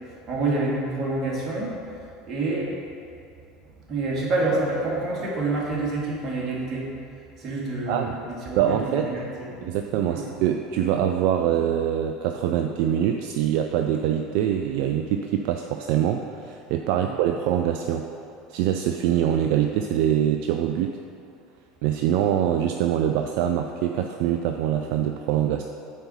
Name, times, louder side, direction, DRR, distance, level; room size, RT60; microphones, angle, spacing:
voice 1, 0.3-1.8 2.3-2.7 3.9-6.9 7.4-9.5 10.1-10.3, right 2 dB, 35° right, -4 dB, 2.0 m, -27 dB
voice 2, 7.9-8.2 8.6-9.1 9.6-18.1 18.5-21.0 21.8-25.6, right 10 dB, 55° right, 5 dB, 0.3 m, -24 dB
8.8 x 4.2 x 5.5 m, 2.6 s
figure-of-eight pair, 70°, 0 cm